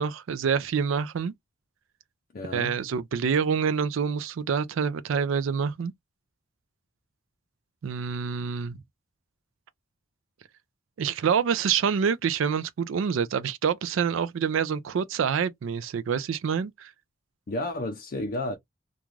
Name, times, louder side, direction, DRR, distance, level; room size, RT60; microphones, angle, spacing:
voice 1, 0.0-1.3 2.5-5.9 7.8-8.8 11.0-16.9, right 6 dB, 70° right, 0.4 m, -27 dB
voice 2, 2.3-2.7 17.5-18.6, left 1 dB, 40° left, 0.4 m, -31 dB
2.4 x 2.3 x 3.1 m
head